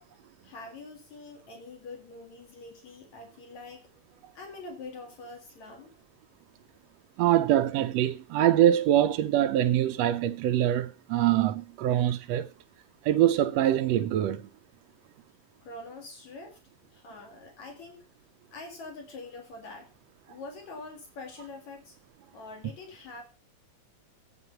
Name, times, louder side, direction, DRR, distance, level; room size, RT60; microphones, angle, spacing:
voice 1, 0.4-3.9 4.3-5.9 15.6-16.6 16.9-18.0 18.5-19.9 20.3-22.0 22.3-23.2, left 3 dB, 70° left, 3.3 m, -44 dB
voice 2, 7.2-12.5 13.1-14.4, right 12 dB, 75° right, 1.7 m, -24 dB
11.0 x 9.0 x 5.8 m
omnidirectional pair, 3.4 m